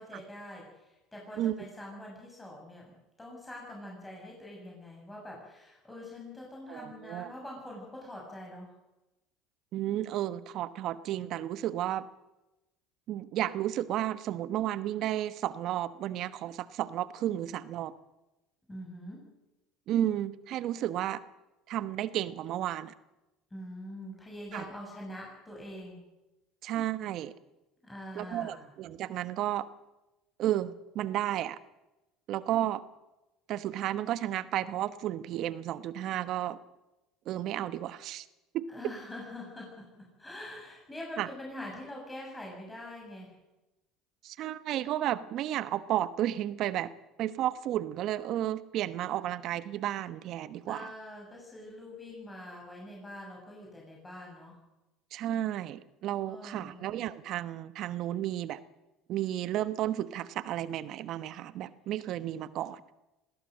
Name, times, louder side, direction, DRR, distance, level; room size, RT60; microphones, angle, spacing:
voice 1, 0.0-8.7 18.7-19.3 23.5-26.0 27.8-28.7 38.7-43.3 50.7-54.6 56.2-56.9, left 1 dB, 15° left, -2 dB, 7.2 m, -44 dB
voice 2, 6.7-7.3 9.7-12.0 13.1-17.9 19.9-21.2 21.7-22.9 24.5-24.7 26.6-27.3 28.1-29.7 30.4-31.6 32.3-32.8 33.5-36.6 37.3-38.3 38.5-38.7 41.2-41.3 44.2-46.9 47.2-50.9 55.1-58.6 59.1-62.8, right 12 dB, 60° right, 14 dB, 1.1 m, -32 dB
20.0 x 17.0 x 7.8 m, 0.99 s
hypercardioid pair, 85°, 0 cm